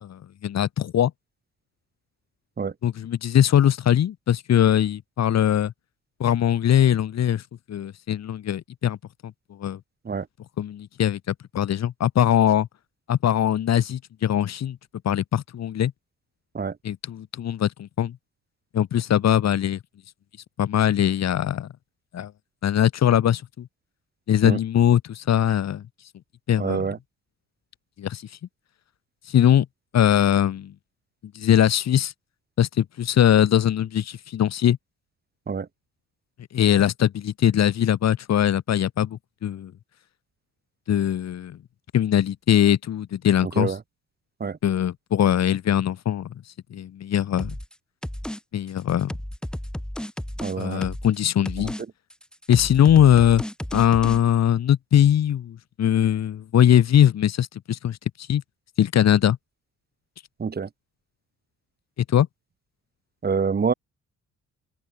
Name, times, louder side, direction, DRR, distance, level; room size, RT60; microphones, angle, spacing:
voice 1, 0.0-1.1 2.8-5.7 6.2-7.4 7.7-9.0 9.6-9.8 10.6-12.7 13.1-14.8 15.0-15.9 16.8-18.2 18.7-19.8 20.6-21.7 22.1-22.3 22.6-23.7 24.3-25.8 26.5-26.9 28.0-28.2 29.3-29.7 29.9-30.7 31.3-32.1 32.6-34.8 36.5-39.7 40.9-41.6 41.9-43.7 44.6-46.3 46.7-47.5 48.5-49.1 50.6-51.7 52.5-53.4 53.7-58.4 58.8-59.4 62.1-62.3, left 10 dB, 60° left, 2.1 m, -21 dB
voice 2, 26.6-27.0 35.5-35.7 43.6-43.8 44.4-44.6 50.4-50.8 60.4-60.7 63.2-63.7, right 5 dB, 30° right, 2.1 m, -26 dB
sound 1, 47.4-47.7 48.0-48.4 48.7-51.2 51.5-51.8 52.1-54.2, equal, 5° left, 1.5 m, -33 dB
open air
cardioid pair, 90°, 30 cm